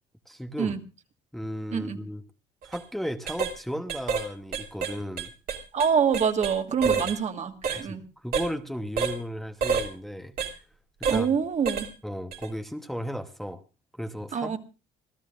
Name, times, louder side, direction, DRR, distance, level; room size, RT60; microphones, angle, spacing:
voice 1, 0.3-0.7 1.3-2.2 2.6-5.3 6.8-7.1 7.7-10.3 11.0-11.3 12.0-13.6 13.9-14.6, equal, ahead, 1.0 m, -35 dB
sound 1, 2.6-2.8 3.3-3.5 3.9-4.3 4.5-6.5 6.8-7.2 7.6-7.8 8.3-8.5 9.0-9.2 9.6-9.9 10.4-10.5 11.0-11.2 11.7-11.9 12.3-12.5, right 6 dB, 60° right, 2.7 m, -28 dB
voice 2, 5.7-8.0 11.1-11.9 14.3-14.6, right 6 dB, 45° right, 1.6 m, -26 dB
26.0 x 13.5 x 2.5 m
cardioid pair, 110°, 17 cm